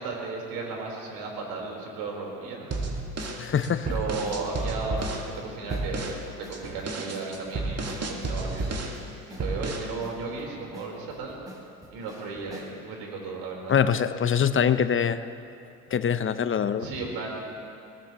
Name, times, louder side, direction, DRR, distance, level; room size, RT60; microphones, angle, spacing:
voice 1, 0.0-2.8 3.8-8.9 9.3-11.4 11.9-13.7 16.8-17.4, right 4 dB, 70° right, -1 dB, 4.5 m, -35 dB
sound 1, 2.7-5.3 5.7-6.2 6.5-9.0 9.4-9.9, right 2 dB, 35° right, 2.3 m, -31 dB
sound 2, 3.2-12.8, left 1 dB, 10° right, 4.0 m, -48 dB
voice 2, 3.4-3.9 13.7-15.2 15.9-16.9, left 7 dB, 30° left, 12 dB, 0.8 m, -24 dB
21.5 x 19.5 x 3.1 m, 2.7 s
hypercardioid pair, 60°, 42 cm